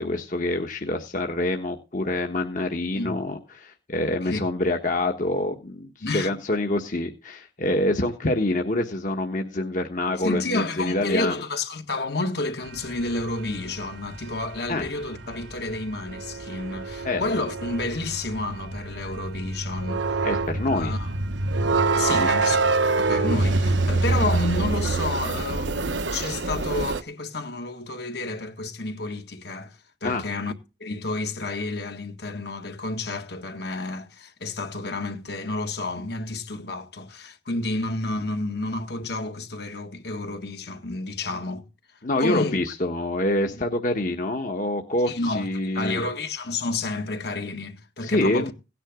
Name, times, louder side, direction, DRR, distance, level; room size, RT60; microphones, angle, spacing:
voice 1, 0.0-11.3 14.7-14.9 17.0-17.2 20.2-20.9 22.1-22.3 30.0-30.2 42.0-46.0 48.0-48.5, left 1 dB, 45° left, 1.4 m, -26 dB
voice 2, 6.0-6.3 10.2-20.3 20.7-21.1 21.9-22.6 23.0-30.5 30.8-41.7 42.2-42.6 45.1-48.5, left 2 dB, 65° left, 1.8 m, -30 dB
sound 1, 12.7-27.0, right 3 dB, 90° right, 1.1 m, -26 dB
17.5 x 10.0 x 3.8 m
head